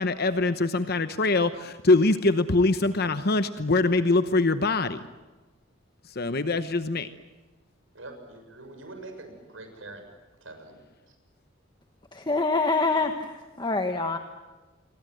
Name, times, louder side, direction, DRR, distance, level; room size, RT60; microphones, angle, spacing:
voice 1, 0.0-5.0 6.1-7.1, left 3 dB, 50° left, 10 dB, 0.9 m, -23 dB
voice 2, 7.9-10.1 10.4-10.8, right 2 dB, 75° right, 6 dB, 6.9 m, -44 dB
voice 3, 12.1-14.2, left 3 dB, 20° left, 6 dB, 1.4 m, -26 dB
29.0 x 23.0 x 7.8 m, 1.2 s
head